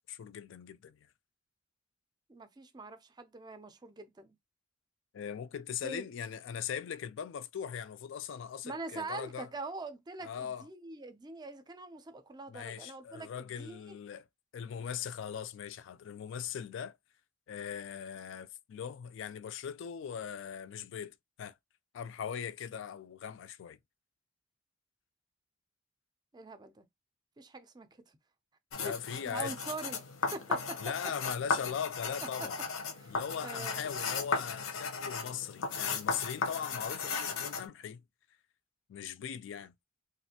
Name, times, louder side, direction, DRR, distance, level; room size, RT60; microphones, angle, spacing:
voice 1, 0.1-1.0 5.1-9.5 10.2-10.7 12.5-14.3 14.5-17.0 17.5-21.5 21.9-23.8 28.8-29.5 30.8-32.6 33.1-38.0 38.9-39.7, left 8 dB, 65° left, 0.3 m, -40 dB
voice 2, 2.3-4.4 5.8-6.0 8.6-13.8 26.3-26.9 27.4-27.9 28.9-29.0 29.2-30.0 30.3-30.8 32.2-32.5 33.0-33.1 33.4-33.9, right 2 dB, 20° right, 0.4 m, -43 dB
sound 1, 28.7-37.7, left 5 dB, 90° left, 0.7 m, -36 dB
3.1 x 2.4 x 2.7 m
head